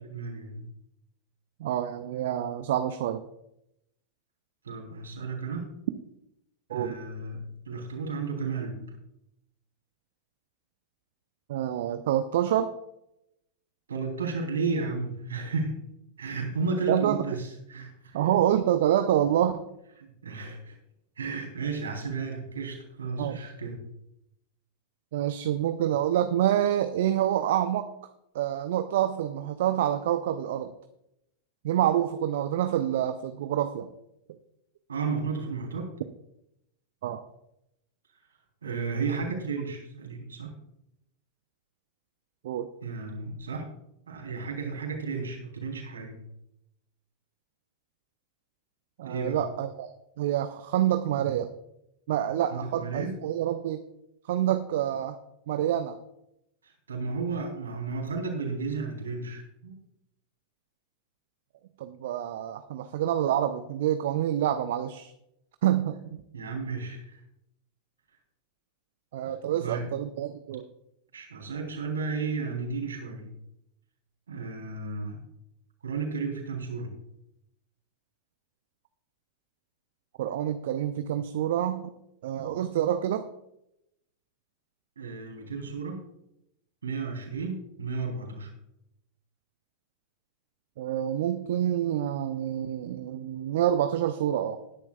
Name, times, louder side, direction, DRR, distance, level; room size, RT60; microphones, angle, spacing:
voice 1, 0.1-0.6 4.6-5.7 6.7-9.0 13.9-15.8 16.2-18.3 20.0-20.8 21.2-23.9 34.9-35.9 38.6-40.5 42.8-43.7 44.1-46.2 49.0-49.4 52.5-53.2 56.6-59.8 66.3-67.2 69.6-69.9 71.1-73.4 74.3-75.3 75.8-77.0 85.0-86.0 86.8-88.5, right 4 dB, 70° right, 0 dB, 3.5 m, -33 dB
voice 2, 1.6-3.2 6.7-6.9 11.5-12.7 16.9-17.2 18.1-19.6 23.2-23.5 25.1-27.9 28.3-30.7 31.6-33.9 37.0-37.2 42.4-42.7 49.0-49.9 50.2-51.5 52.1-53.8 54.3-55.2 55.5-56.0 61.8-65.1 65.6-66.2 69.1-70.7 80.2-81.9 82.2-83.3 90.8-94.6, right 11 dB, 55° right, 10 dB, 0.6 m, -27 dB
19.5 x 10.5 x 2.3 m, 0.82 s
figure-of-eight pair, 90°, 0 cm